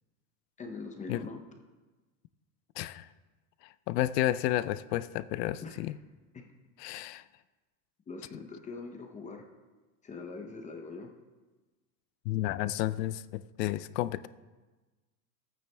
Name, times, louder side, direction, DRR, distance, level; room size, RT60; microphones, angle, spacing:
voice 1, 0.6-1.4 5.6-5.8 6.3-6.4 8.1-9.4 10.0-11.1, left 4 dB, 15° left, 3 dB, 0.6 m, -42 dB
voice 2, 2.8-3.1 3.9-6.0 6.8-7.2 12.3-14.3, left 14 dB, 80° left, 16 dB, 0.5 m, -31 dB
13.5 x 9.0 x 2.2 m, 1.2 s
supercardioid pair, 130°, 48 cm